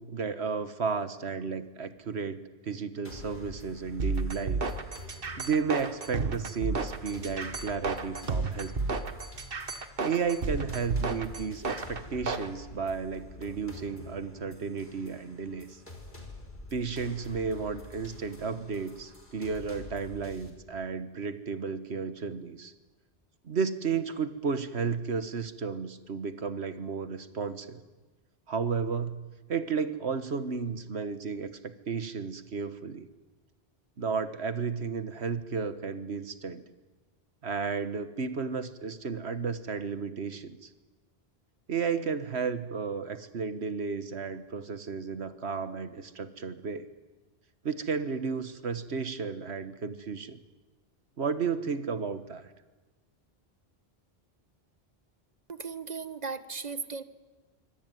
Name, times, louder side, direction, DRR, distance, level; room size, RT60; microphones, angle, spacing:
voice 1, 0.0-4.6 5.4-9.1 10.0-15.8 16.7-22.7 23.4-27.8 28.5-29.2 29.5-33.1 34.0-36.6 37.4-40.7 41.7-46.9 47.6-50.4 51.2-52.5, right 5 dB, 90° right, 11 dB, 1.6 m, -33 dB
sound 1, 3.0-20.5, left 2 dB, 50° left, 4.1 m, -48 dB
sound 2, 4.0-12.5, right 3 dB, 60° right, 1.7 m, -32 dB
voice 2, 55.5-57.0, right 5 dB, 40° right, 12 dB, 1.4 m, -37 dB
25.5 x 25.0 x 9.2 m, 1.2 s
omnidirectional pair, 1.1 m